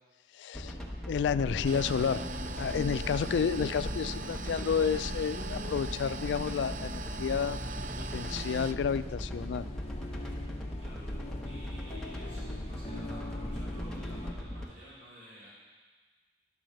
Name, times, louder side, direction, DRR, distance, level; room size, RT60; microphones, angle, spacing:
voice 1, 0.3-0.8 1.1-2.2 2.6-7.6 8.0-9.7, left 6 dB, 85° left, 15 dB, 0.3 m, -30 dB
sound 1, 0.5-14.6, equal, 5° left, 0.9 m, -39 dB
sound 2, 1.3-14.3, left 1 dB, 35° left, 0.8 m, -42 dB
sound 3, 1.6-8.7, right 5 dB, 45° right, 0.3 m, -43 dB
voice 2, 3.0-3.4 10.8-15.5, equal, 80° right, -9 dB, 2.9 m, -52 dB
11.0 x 4.7 x 6.4 m, 1.4 s
head